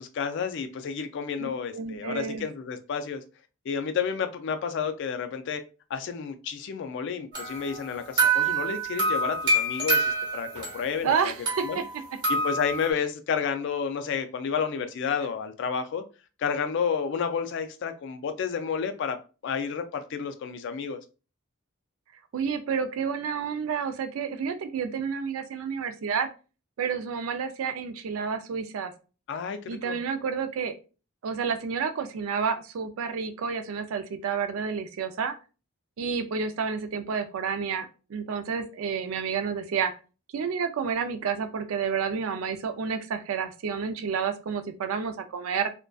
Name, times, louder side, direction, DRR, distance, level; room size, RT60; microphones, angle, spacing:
voice 1, 0.0-3.2 3.7-5.6 5.9-11.3 11.6-11.8 12.3-16.0 16.4-19.2 19.4-21.0 29.3-30.0, left 6 dB, 55° left, 0.3 m, -31 dB
voice 2, 1.4-2.5 11.0-11.8 22.3-26.3 26.8-28.9 29.7-30.7 31.2-35.3 36.0-39.9 40.3-45.7, right 6 dB, 70° right, 0.4 m, -30 dB
sound 1, 7.3-10.9 11.5-12.9, right 3 dB, 20° right, 0.8 m, -27 dB
2.5 x 2.1 x 2.3 m
head